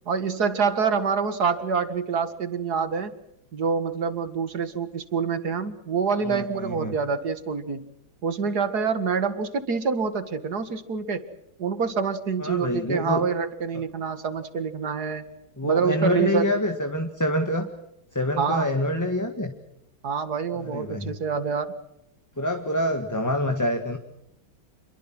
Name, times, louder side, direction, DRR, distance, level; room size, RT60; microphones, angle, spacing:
voice 1, 0.1-3.1 3.5-7.9 8.2-11.2 11.6-15.2 15.6-16.5 18.4-18.7 20.0-21.7, right 5 dB, 55° right, 11 dB, 2.3 m, -26 dB
voice 2, 6.2-6.9 12.4-13.3 15.6-17.7 18.1-19.6 20.6-21.1 22.4-24.0, left 1 dB, 10° left, 5 dB, 1.8 m, -26 dB
28.0 x 23.0 x 6.2 m, 0.82 s
omnidirectional pair, 2.1 m